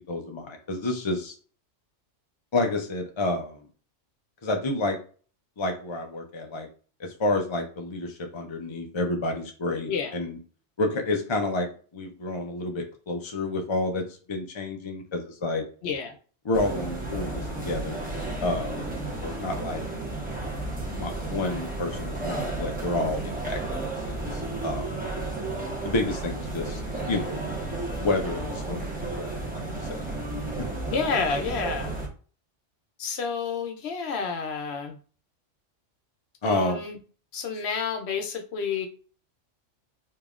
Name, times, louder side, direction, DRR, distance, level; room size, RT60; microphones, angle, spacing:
voice 1, 0.1-1.3 2.5-3.6 4.4-5.0 5.6-6.7 7.0-10.4 10.8-15.6 16.4-18.0 18.4-18.8 19.2-19.9 20.9-24.9 25.8-26.8 27.1-27.4 28.0-30.0 30.6-30.7 36.4-36.8, left 2 dB, 45° left, 3 dB, 0.4 m, -29 dB
voice 2, 15.8-16.2 30.9-31.9 33.0-35.0 36.4-37.0 37.3-38.9, left 5 dB, 65° left, 5 dB, 0.9 m, -29 dB
sound 1, 16.5-32.1, right 2 dB, 10° right, 0.8 m, -33 dB
5.0 x 2.8 x 2.4 m, 0.40 s
omnidirectional pair, 1.3 m